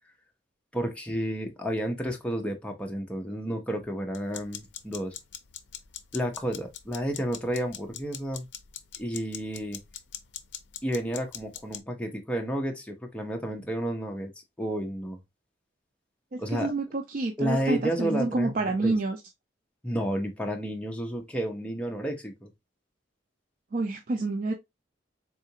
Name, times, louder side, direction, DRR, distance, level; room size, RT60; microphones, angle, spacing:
voice 1, 0.7-5.1 6.1-8.5 9.0-9.8 10.8-14.3 14.6-15.2 16.4-16.7 17.4-18.5 18.8-18.9 19.8-22.5, equal, 5° left, 0.6 m, -31 dB
sound 1, 4.1-11.8, left 10 dB, 70° left, 0.5 m, -44 dB
voice 2, 16.3-19.2 23.7-24.5, right 2 dB, 50° right, 0.4 m, -28 dB
3.7 x 2.4 x 2.7 m
head